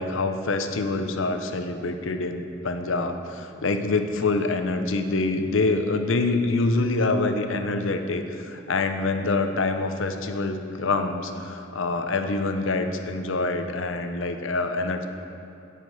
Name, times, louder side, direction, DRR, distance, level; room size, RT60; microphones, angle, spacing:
voice 1, 0.0-15.1, left 3 dB, 70° left, 7 dB, 0.7 m, -26 dB
9.7 x 5.1 x 7.8 m, 2.6 s
head